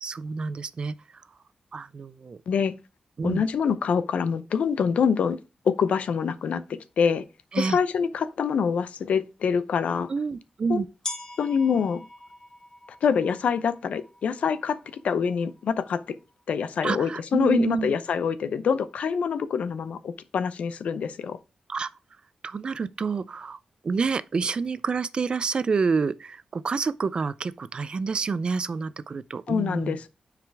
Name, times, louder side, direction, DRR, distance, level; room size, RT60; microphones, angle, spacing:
voice 1, 0.0-0.9 1.7-2.4 3.2-3.4 7.5-7.8 10.1-10.9 16.8-18.0 21.7-21.9 22.4-23.6 23.8-30.0, right 5 dB, 45° right, 0.4 m, -28 dB
voice 2, 3.2-5.4 5.6-6.6 7.0-7.2 7.6-10.1 10.7-10.9 11.4-12.0 13.0-14.8 15.0-16.1 16.5-21.4 29.5-30.1, left 6 dB, 85° left, 0.6 m, -25 dB
sound 1, 11.0-16.6, left 2 dB, 30° left, 1.9 m, -43 dB
9.2 x 5.0 x 3.4 m
wide cardioid pair, 110°, 2 cm